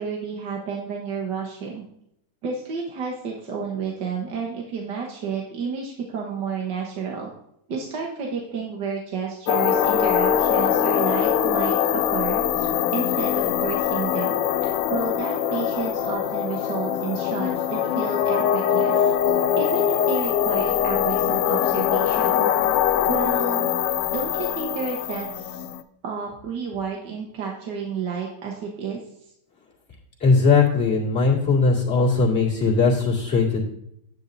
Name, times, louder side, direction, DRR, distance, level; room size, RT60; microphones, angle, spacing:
voice 1, 0.0-1.8 2.4-7.3 7.7-14.3 14.6-19.1 19.6-22.5 23.1-23.7 24.1-25.6 26.0-29.0, right 5 dB, 55° right, -1 dB, 1.7 m, -31 dB
sound 1, 9.5-25.8, left 9 dB, 85° left, 1.5 m, -22 dB
voice 2, 30.2-33.7, left 4 dB, 30° left, -5 dB, 2.4 m, -19 dB
9.9 x 8.9 x 2.6 m, 0.76 s
omnidirectional pair, 2.4 m